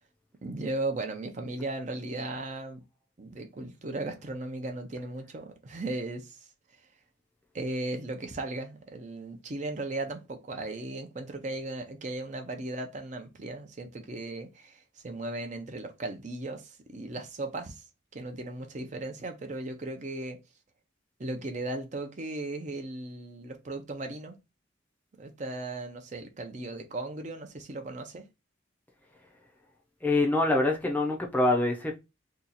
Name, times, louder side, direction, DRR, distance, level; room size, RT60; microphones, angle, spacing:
voice 1, 0.4-2.8 3.2-6.4 7.5-17.8 18.1-20.4 21.2-24.4 25.2-28.2, right 2 dB, 40° right, 0.5 m, -36 dB
voice 2, 30.0-32.0, left 2 dB, 10° left, 0.5 m, -25 dB
2.8 x 2.4 x 3.9 m
head